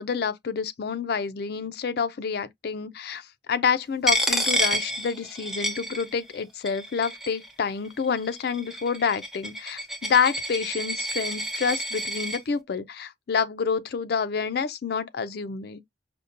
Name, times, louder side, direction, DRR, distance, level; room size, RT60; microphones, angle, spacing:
voice 1, 0.0-15.8, left 6 dB, 60° left, 0.4 m, -28 dB
Coin (dropping), 4.1-6.4 6.7-7.5 8.2-12.4, equal, ahead, 0.6 m, -29 dB
5.1 x 2.1 x 2.4 m
head